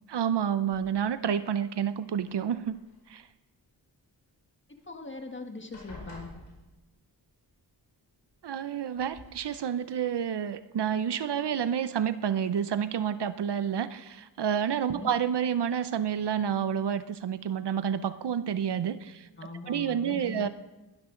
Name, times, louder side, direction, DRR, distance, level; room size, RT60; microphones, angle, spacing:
voice 1, 0.1-2.8 3.1-3.3 8.4-19.3 19.7-20.5, right 8 dB, 70° right, 13 dB, 0.7 m, -29 dB
sound 1, 0.7-1.3 2.1-3.0 4.8-4.9 5.2-5.4 5.7-7.2 8.3-8.4 8.9-9.3, left 2 dB, 85° left, 5.4 m, -49 dB
voice 2, 4.9-6.3 14.9-15.1 19.4-20.5, left 3 dB, 25° left, 4 dB, 1.5 m, -41 dB
20.5 x 12.5 x 3.8 m, 1.1 s
wide cardioid pair, 110°, 42 cm